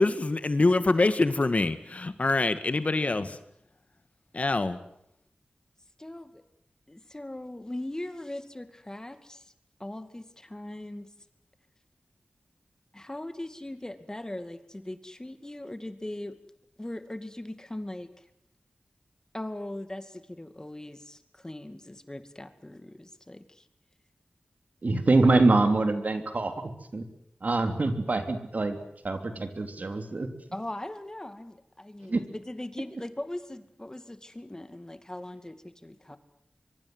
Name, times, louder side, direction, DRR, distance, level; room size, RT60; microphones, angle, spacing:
voice 1, 0.0-3.2 4.3-4.8, left 2 dB, 50° left, 11 dB, 1.8 m, -24 dB
voice 2, 6.0-6.4 6.9-9.5 9.8-11.1 12.9-16.4 16.8-18.2 19.3-23.7 30.5-36.2, left 1 dB, 20° left, 10 dB, 2.3 m, -40 dB
voice 3, 24.8-26.5 26.9-27.0 27.4-30.3 32.1-32.2, right 2 dB, 60° right, 7 dB, 3.3 m, -25 dB
24.5 x 23.5 x 8.0 m, 0.76 s
wide cardioid pair, 65°, 3 cm